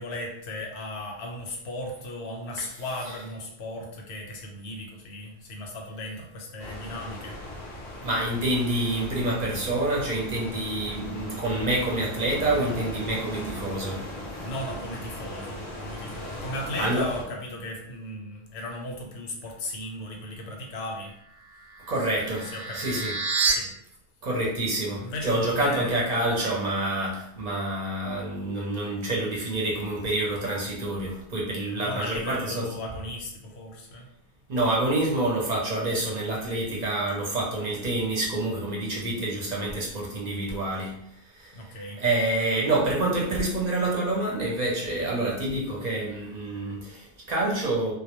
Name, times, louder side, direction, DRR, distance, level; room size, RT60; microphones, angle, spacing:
voice 1, 0.0-7.4 14.4-21.1 22.4-23.1 23.5-23.7 25.0-26.2 31.7-34.1 41.5-42.0, left 1 dB, 80° left, 0 dB, 0.9 m, -36 dB
sound 1, 6.6-17.2, left 1 dB, 45° left, 0.7 m, -38 dB
voice 2, 8.0-14.1 16.2-16.4 16.8-17.1 21.9-23.1 24.2-32.7 34.5-41.0 41.2-47.9, right 2 dB, 45° right, -4 dB, 0.7 m, -27 dB
sound 2, 21.3-23.5, right 5 dB, 80° right, 0.9 m, -29 dB
2.1 x 2.1 x 2.9 m, 0.76 s
omnidirectional pair, 1.1 m